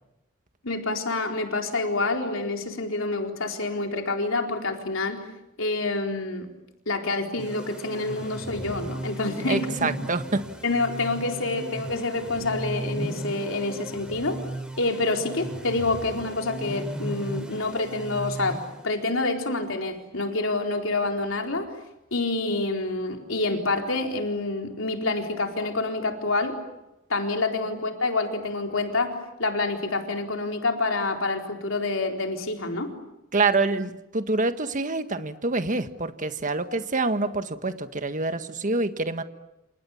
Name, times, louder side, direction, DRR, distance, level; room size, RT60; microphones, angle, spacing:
voice 1, 0.6-5.2 5.6-6.5 6.9-9.9 10.6-14.4 14.8-21.7 22.1-26.6 27.1-32.9, left 2 dB, 75° left, 4 dB, 4.2 m, -27 dB
sound 1, 7.4-19.2, right 1 dB, 5° right, 5.3 m, -36 dB
voice 2, 9.5-10.4 33.3-39.2, right 3 dB, 40° right, 9 dB, 1.7 m, -26 dB
28.5 x 28.0 x 7.3 m, 0.92 s
head